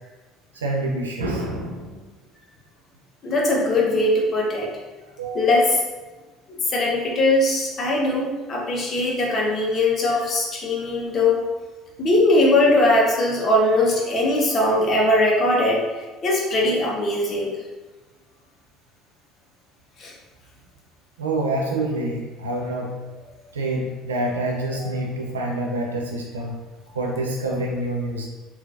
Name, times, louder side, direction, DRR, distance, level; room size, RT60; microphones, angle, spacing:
voice 1, 0.5-2.1 5.2-5.6 21.2-23.0 23.5-26.5 26.9-28.3, right 2 dB, 90° right, -1 dB, 0.4 m, -27 dB
voice 2, 3.2-4.7 5.3-5.8 6.7-11.4 12.0-15.8 16.2-17.5 20.0-20.1, left 1 dB, 45° left, -2 dB, 0.8 m, -20 dB
3.1 x 2.4 x 2.4 m, 1.2 s
hypercardioid pair, 60°, 0 cm